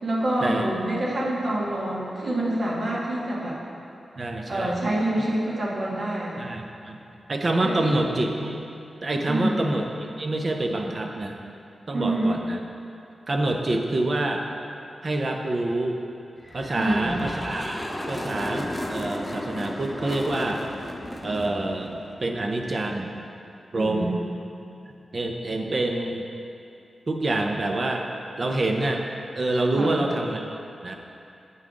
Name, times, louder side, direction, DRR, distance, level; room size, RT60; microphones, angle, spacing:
voice 1, 0.0-3.6 4.5-6.4 7.6-8.0 9.3-9.6 11.9-12.3 16.7-17.2 23.7-24.2 29.7-30.0, right 1 dB, 60° right, -5 dB, 1.4 m, -26 dB
voice 2, 4.2-4.8 6.4-7.0 7.3-8.6 9.0-11.4 11.9-12.6 13.3-14.4 15.0-16.0 16.5-17.8 18.1-20.6 21.2-23.1 23.7-24.1 25.1-26.3 27.1-28.1 28.4-29.0 29.3-30.6 30.8-30.9, right 2 dB, 40° right, 2 dB, 0.6 m, -26 dB
sound 1, 16.4-22.8, left 1 dB, 15° left, 0.5 m, -34 dB
7.8 x 5.5 x 3.7 m, 2.7 s
wide cardioid pair, 115°, 0 cm